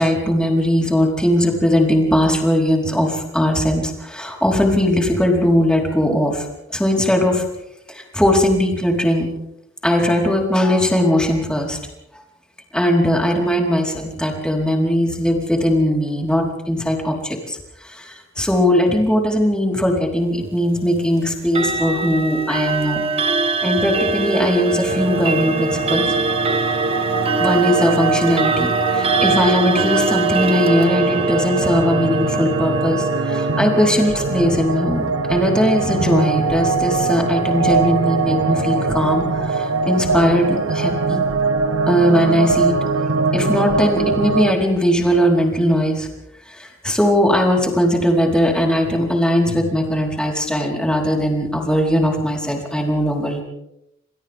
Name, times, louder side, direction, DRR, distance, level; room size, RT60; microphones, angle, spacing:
voice 1, 0.0-6.4 6.7-7.5 7.9-9.3 9.8-11.8 12.7-23.0 23.6-26.0 27.4-41.2 41.9-42.8 43.3-46.1 46.5-53.4, equal, 5° left, 0 dB, 4.8 m, -19 dB
Clock, 21.5-34.6, right 3 dB, 30° right, 1.6 m, -23 dB
sound 1, 24.9-44.5, right 4 dB, 85° right, 1.5 m, -22 dB
28.0 x 28.0 x 3.8 m, 0.83 s
head